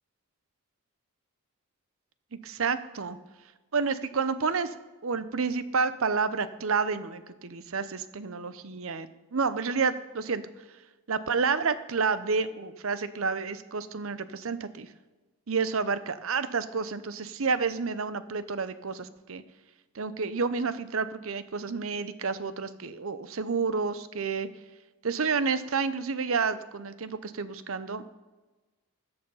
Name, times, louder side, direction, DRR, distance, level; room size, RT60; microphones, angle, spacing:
voice 1, 2.4-3.2 3.7-4.8 5.0-10.4 11.1-14.9 15.5-19.4 19.9-24.5 25.0-28.2, right 5 dB, 70° right, 14 dB, 0.7 m, -30 dB
14.0 x 7.9 x 5.5 m, 1.2 s
head